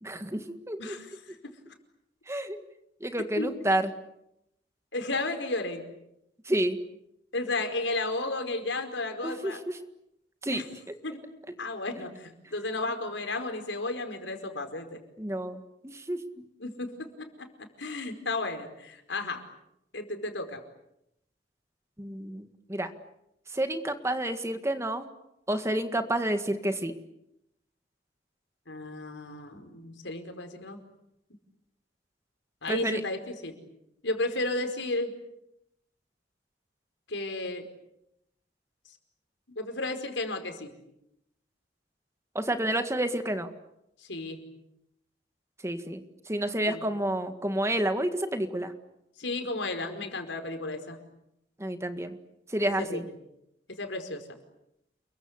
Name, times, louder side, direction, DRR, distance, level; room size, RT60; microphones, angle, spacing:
voice 1, 0.0-1.0 2.3-2.6 3.0-3.9 6.5-6.8 9.2-9.8 10.4-10.6 12.0-12.1 15.2-16.4 22.0-22.9 23.5-25.1 25.5-26.9 32.7-33.0 42.4-43.5 45.6-48.7 51.6-52.2 52.5-53.1, right 1 dB, 15° right, 8 dB, 1.8 m, -30 dB
voice 2, 0.8-1.4 3.4-3.6 4.9-5.8 7.3-9.6 10.5-10.6 11.0-11.2 11.6-15.0 16.6-17.5 17.8-19.4 19.9-20.6 28.7-30.8 32.6-33.6 34.0-35.1 37.1-37.7 39.6-40.7 44.0-44.4 46.7-46.8 49.2-51.0 52.8-53.0 53.7-54.3, left 2 dB, 90° left, 6 dB, 4.9 m, -33 dB
29.5 x 23.0 x 8.2 m, 0.82 s
head